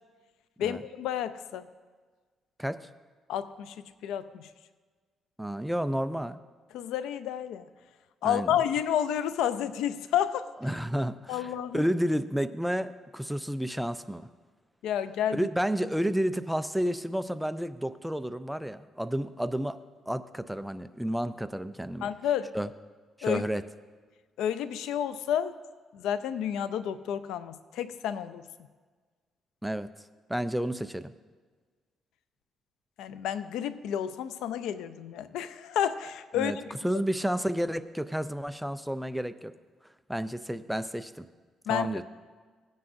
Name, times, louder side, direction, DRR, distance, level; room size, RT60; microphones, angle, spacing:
voice 1, 0.6-1.7 3.3-3.8 4.0-4.5 6.7-7.6 8.2-10.5 11.3-11.8 14.8-15.5 22.0-22.5 23.2-23.4 24.4-25.5 25.9-28.4 33.0-36.8 41.7-42.0, left 9 dB, 90° left, 13 dB, 0.4 m, -30 dB
voice 2, 5.4-6.4 8.2-8.6 10.6-14.3 15.3-19.8 20.1-22.1 22.5-22.7 23.2-23.6 29.6-29.9 30.3-31.1 36.3-36.6 36.8-39.5 40.1-41.2 41.7-42.0, equal, 5° right, 12 dB, 0.4 m, -31 dB
17.0 x 9.5 x 2.6 m, 1.5 s
cardioid pair, 90°, 0 cm